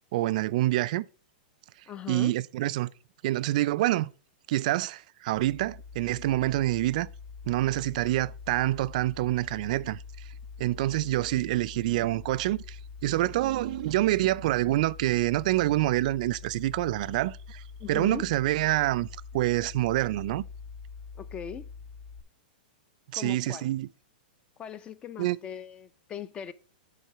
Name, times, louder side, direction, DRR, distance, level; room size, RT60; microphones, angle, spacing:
voice 1, 0.1-1.1 2.1-2.9 3.2-4.1 4.5-7.1 7.5-10.0 10.6-19.1 19.3-20.4 23.1-23.9 25.2-25.4, right 16 dB, 55° right, 0.4 m, -27 dB
voice 2, 1.9-2.3 17.8-18.2 21.2-21.7 23.1-23.7 24.6-26.5, left 8 dB, 20° left, 0.5 m, -39 dB
sound 1, 5.3-22.2, left 5 dB, 40° left, 1.2 m, -44 dB
8.2 x 4.1 x 5.6 m
hypercardioid pair, 145°, 5 cm